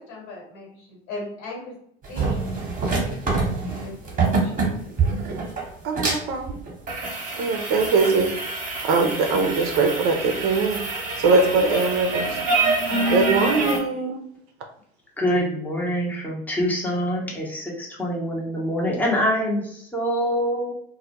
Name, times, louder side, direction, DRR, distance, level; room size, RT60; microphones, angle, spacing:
voice 1, 0.0-1.7 2.1-2.4 2.9-5.3, left 2 dB, 55° left, -3 dB, 1.3 m, -39 dB
sound 1, 2.0-13.8, right 3 dB, 25° right, 1.0 m, -26 dB
voice 2, 5.8-6.5 7.3-8.3 8.8-10.8 11.2-12.4 13.1-14.2, right 4 dB, 50° right, 3 dB, 0.6 m, -21 dB
voice 3, 15.2-20.7, equal, 5° left, -3 dB, 0.8 m, -25 dB
2.2 x 2.1 x 2.9 m, 0.69 s
hypercardioid pair, 75°, 30 cm